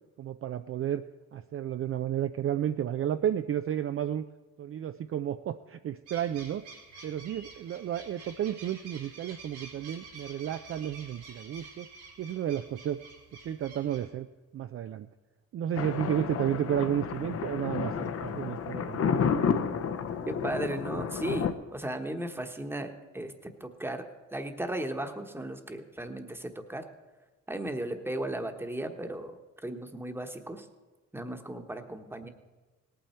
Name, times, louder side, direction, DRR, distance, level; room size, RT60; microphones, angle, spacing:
voice 1, 0.2-1.0 1.3-4.2 4.6-6.7 7.0-11.9 12.2-13.0 13.4-14.3 14.5-15.1 15.5-19.3, right 10 dB, 45° right, 10 dB, 0.4 m, -32 dB
sound 1, 6.1-14.1, right 4 dB, 90° right, 3.8 m, -49 dB
Thunder, 15.8-21.5, left 6 dB, 50° left, 0.9 m, -31 dB
voice 2, 20.3-23.3 23.6-24.1 24.3-26.9 27.5-30.7 31.1-32.3, right 1 dB, 5° right, 6 dB, 1.1 m, -36 dB
18.0 x 9.0 x 4.3 m, 1.2 s
cardioid pair, 90°, 30 cm